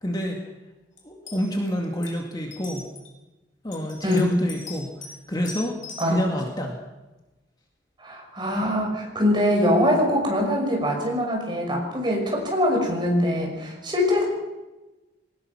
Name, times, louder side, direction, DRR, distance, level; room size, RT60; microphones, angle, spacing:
voice 1, 0.0-0.4 1.0-2.9 3.6-5.8 6.1-6.8, equal, 20° left, 1 dB, 2.2 m, -28 dB
sound 1, 1.0-1.1 1.3-1.7 2.0-2.1 2.5-3.1 3.7-5.2 5.4-6.1, left 3 dB, 40° left, 5.7 m, -40 dB
voice 2, 8.0-14.2, left 1 dB, 25° right, 0 dB, 5.9 m, -23 dB
22.5 x 19.5 x 6.0 m, 1.1 s
head